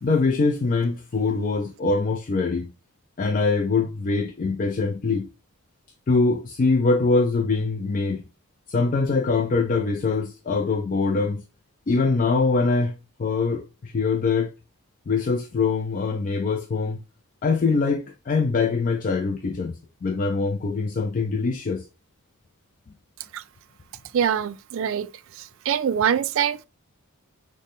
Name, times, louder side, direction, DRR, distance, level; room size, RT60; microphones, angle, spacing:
voice 1, 0.0-2.7 3.2-5.3 6.1-8.2 8.7-11.4 11.9-14.5 15.1-17.0 17.4-21.8, left 4 dB, 35° left, 0.4 m, -23 dB
voice 2, 24.1-25.1 25.3-26.7, right 8 dB, 60° right, 0.3 m, -24 dB
6.3 x 2.1 x 3.5 m
head